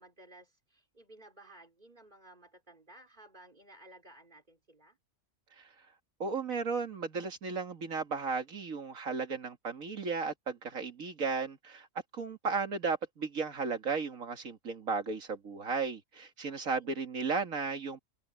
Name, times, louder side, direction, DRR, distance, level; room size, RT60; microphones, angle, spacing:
voice 1, 0.0-5.0 16.5-16.9, right 1 dB, 35° right, 4.2 m, -56 dB
voice 2, 6.2-11.9 12.1-18.0, right 4 dB, 90° right, 2.4 m, -35 dB
open air
omnidirectional pair, 1.4 m